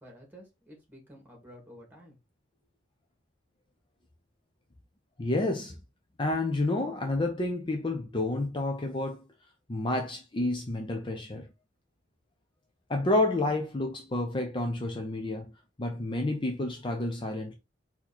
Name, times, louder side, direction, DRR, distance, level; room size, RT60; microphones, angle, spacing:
voice 1, 0.0-2.2, equal, 10° right, 2.0 m, -51 dB
voice 2, 5.2-5.8 6.2-9.2 9.7-11.5 12.9-15.5 15.8-17.6, left 2 dB, 25° left, 0.6 m, -29 dB
4.4 x 2.8 x 4.3 m
head